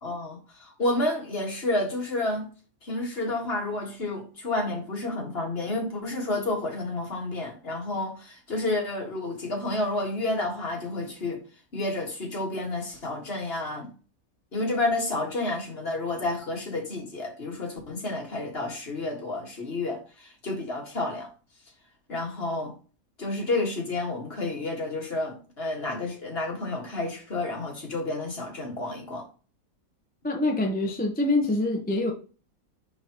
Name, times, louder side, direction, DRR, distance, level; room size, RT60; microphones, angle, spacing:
voice 1, 0.0-2.5 2.8-11.4 11.7-13.9 14.5-21.3 22.1-22.7 23.2-29.3, left 2 dB, 45° left, 2.0 m, -30 dB
voice 2, 30.2-32.1, left 2 dB, 10° left, 0.8 m, -25 dB
9.8 x 3.7 x 3.0 m
omnidirectional pair, 1.5 m